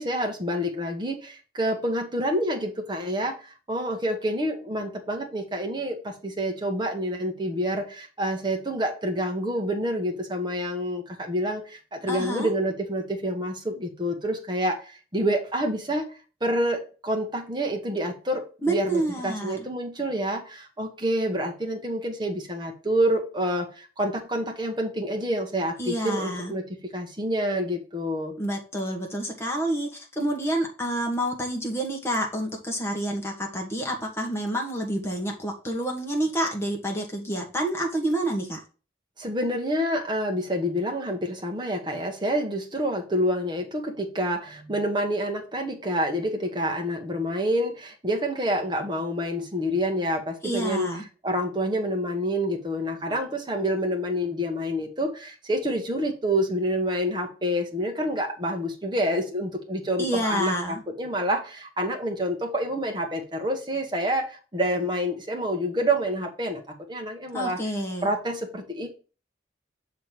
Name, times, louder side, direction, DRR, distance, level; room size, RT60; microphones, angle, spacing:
voice 1, 0.0-16.1 16.4-26.6 26.9-28.3 39.2-50.9 51.2-66.6 66.9-67.6 68.0-68.9, equal, 25° right, 2 dB, 1.2 m, -28 dB
voice 2, 12.1-12.5 18.6-19.6 25.8-26.5 28.4-38.6 50.4-51.0 60.0-60.8 67.3-68.1, right 1 dB, 15° left, 1 dB, 1.4 m, -28 dB
6.4 x 3.8 x 4.5 m, 0.35 s
head